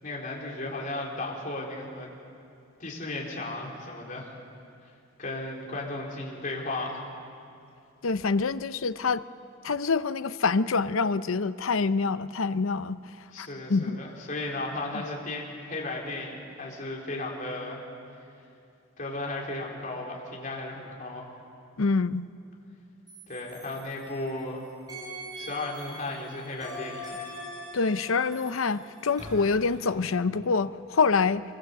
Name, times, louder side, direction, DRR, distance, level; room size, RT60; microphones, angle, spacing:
voice 1, 0.0-2.1 2.8-4.3 5.2-7.0 13.3-17.8 19.0-21.3 23.3-24.6 25.4-27.2, left 2 dB, 40° left, -2 dB, 4.2 m, -35 dB
voice 2, 8.0-9.2 9.6-13.0 13.4-14.0 21.8-22.2 27.7-31.4, left 4 dB, 80° left, 13 dB, 0.7 m, -26 dB
sound 1, 23.1-24.5 24.9-29.9, equal, 20° right, 7.9 m, -43 dB
25.0 x 23.0 x 8.1 m, 2.6 s
head